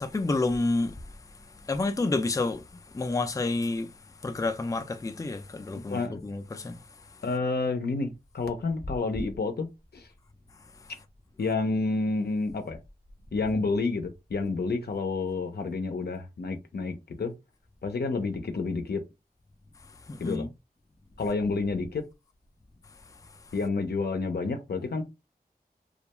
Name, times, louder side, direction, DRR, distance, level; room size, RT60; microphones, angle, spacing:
voice 1, 0.0-1.0 1.6-2.6 2.9-3.9 4.2-6.8 20.1-20.5, left 2 dB, 20° left, 0.3 m, -29 dB
voice 2, 5.9-6.2 7.2-9.7 9.9-10.1 11.4-12.8 13.3-17.3 17.8-19.0 20.2-20.5 21.2-22.0 23.5-25.0, left 3 dB, 85° left, 0.5 m, -29 dB
2.3 x 2.2 x 2.9 m
wide cardioid pair, 60°, 16 cm